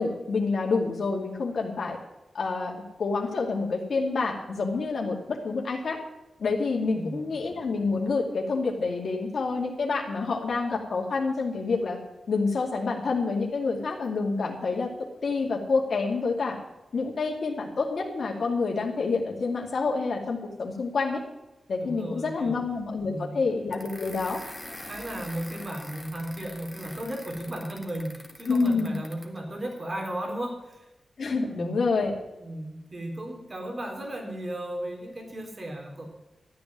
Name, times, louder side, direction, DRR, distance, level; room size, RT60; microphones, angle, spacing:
voice 1, 0.0-2.0 2.3-6.0 6.4-12.0 12.3-14.9 15.2-16.6 16.9-21.2 21.7-24.4 28.5-28.9 31.2-32.1, left 4 dB, 70° left, -1 dB, 2.5 m, -28 dB
voice 2, 6.9-7.3 21.8-22.6 23.1-23.4 24.9-30.8 31.5-31.8 32.4-36.1, right 1 dB, 40° right, 2 dB, 3.7 m, -35 dB
sound 1, 23.7-29.4, left 1 dB, 5° left, 2.1 m, -44 dB
13.5 x 8.8 x 7.6 m, 1.0 s
wide cardioid pair, 100°, 0 cm